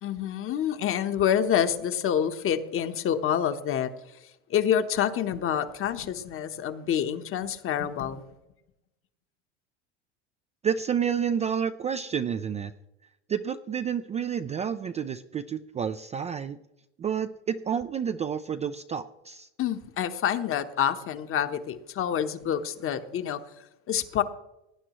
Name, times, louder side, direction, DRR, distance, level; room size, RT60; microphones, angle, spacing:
voice 1, 0.0-3.9 4.5-8.2 19.6-23.4 23.9-24.2, left 9 dB, 40° left, 9 dB, 1.0 m, -27 dB
voice 2, 10.6-12.7 13.3-16.6 17.0-19.5, right 7 dB, 20° right, 10 dB, 0.3 m, -29 dB
17.5 x 9.5 x 3.1 m, 0.91 s
supercardioid pair, 110°, 34 cm